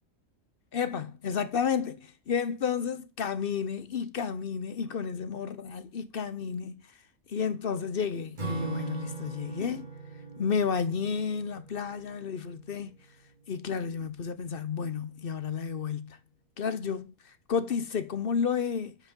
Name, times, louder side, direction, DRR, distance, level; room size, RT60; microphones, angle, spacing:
voice 1, 0.7-6.8 7.3-9.9 10.4-13.0 13.5-16.2 16.6-19.0, left 6 dB, 50° left, 0.8 m, -31 dB
Acoustic guitar / Strum, 8.4-13.2, right 4 dB, 30° right, 2.1 m, -40 dB
10.0 x 5.1 x 5.3 m
omnidirectional pair, 1.5 m